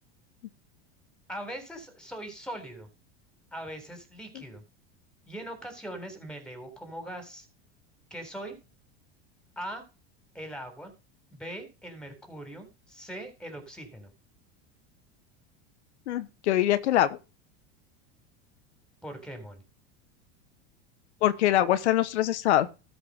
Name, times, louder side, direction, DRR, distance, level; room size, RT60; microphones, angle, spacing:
voice 1, 1.3-2.9 3.5-4.6 5.3-7.5 8.1-8.6 9.6-9.8 10.3-10.9 11.3-14.1 19.0-19.6, right 1 dB, 5° left, 3.8 m, -41 dB
voice 2, 16.1-17.2 21.2-22.7, left 13 dB, 90° left, 1.0 m, -23 dB
13.0 x 5.4 x 5.4 m
supercardioid pair, 115°, 33 cm